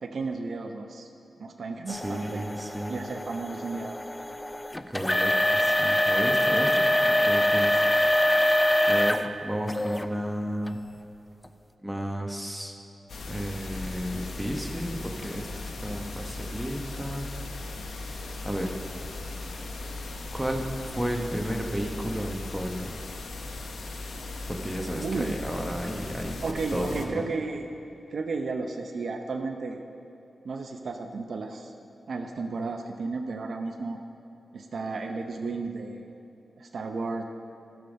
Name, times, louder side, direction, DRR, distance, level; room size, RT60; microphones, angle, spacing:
voice 1, 0.0-1.1 1.4-2.5 2.9-4.0 25.0-25.3 26.4-27.7 28.1-29.8 30.4-31.7 32.1-34.0 34.5-36.1 36.6-37.2, right 3 dB, 70° right, 5 dB, 0.7 m, -33 dB
sound 1, 1.9-9.3 9.7-10.1 10.7-10.8 11.4-11.5, left 1 dB, 15° left, 0.5 m, -24 dB
voice 2, 1.9-3.0 4.9-8.1 8.4-8.5 8.9-10.8 11.8-12.7 13.3-15.5 15.8-17.3 18.4-18.7 20.3-22.9 24.5-26.4 26.7-27.2, equal, 5° right, 1 dB, 1.2 m, -33 dB
sound 2, 13.1-27.1, left 2 dB, 80° left, 0.9 m, -38 dB
12.5 x 7.1 x 5.3 m, 2.9 s
cardioid pair, 75°, 0 cm